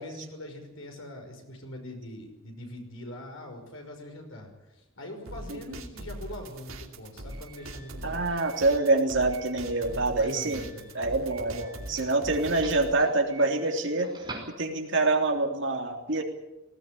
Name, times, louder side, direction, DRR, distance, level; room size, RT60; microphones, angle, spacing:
voice 1, 0.0-8.3 9.9-10.9, left 1 dB, 75° left, 3 dB, 5.7 m, -43 dB
sound 1, 5.3-12.9, right 1 dB, 85° right, 2.7 m, -41 dB
Doorbell, 6.1-15.1, right 3 dB, 20° right, 5.2 m, -48 dB
voice 2, 8.0-10.6 10.9-14.1 14.6-16.2, right 2 dB, 60° right, 3 dB, 3.3 m, -26 dB
19.0 x 17.0 x 9.9 m, 1.0 s
head